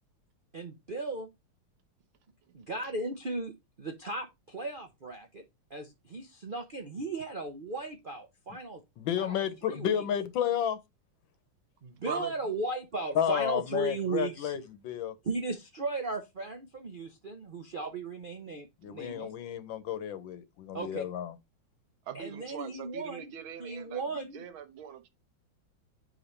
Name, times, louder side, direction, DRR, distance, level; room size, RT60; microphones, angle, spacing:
voice 1, 0.5-1.3 2.5-5.4 5.7-8.8 9.2-9.4 9.6-10.0 11.8-14.6 15.2-19.3 20.7-21.1 22.1-23.3 23.6-24.4, right 3 dB, 70° right, 0.4 m, -36 dB
voice 2, 9.0-10.8 13.1-15.1 18.8-21.3, left 9 dB, 75° left, 1.5 m, -31 dB
voice 3, 11.9-12.3 22.1-25.1, right 8 dB, 90° right, 1.8 m, -42 dB
5.6 x 5.2 x 4.3 m
omnidirectional pair, 2.2 m